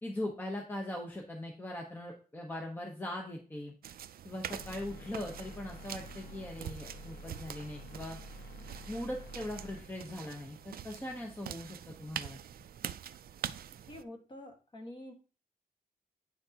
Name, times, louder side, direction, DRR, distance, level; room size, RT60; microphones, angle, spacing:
voice 1, 0.0-3.7 4.2-8.2 8.9-12.4, left 1 dB, 15° left, 0 dB, 0.9 m, -40 dB
sound 1, 3.8-14.0, right 10 dB, 80° right, 0.4 m, -45 dB
sound 2, 4.4-9.8, left 1 dB, 80° left, 1.3 m, -49 dB
voice 2, 13.9-15.1, left 1 dB, 35° left, 2 dB, 1.5 m, -47 dB
9.1 x 5.8 x 2.9 m, 0.37 s
wide cardioid pair, 180°, 15 cm